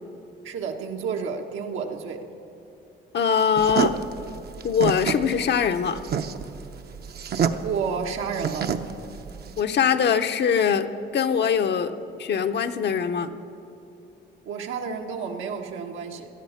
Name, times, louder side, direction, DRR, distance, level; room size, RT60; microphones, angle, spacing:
voice 1, 0.4-2.2 7.6-8.7 14.4-16.3, right 6 dB, 85° right, 2 dB, 1.5 m, -30 dB
voice 2, 3.1-4.0 4.6-6.0 9.6-10.9 11.1-11.9 12.2-13.4, left 7 dB, 60° left, 8 dB, 0.8 m, -22 dB
sound 1, 3.6-9.6, right 7 dB, 55° right, 0.8 m, -28 dB
18.0 x 12.5 x 5.8 m, 2.8 s
cardioid pair, 90°, 20 cm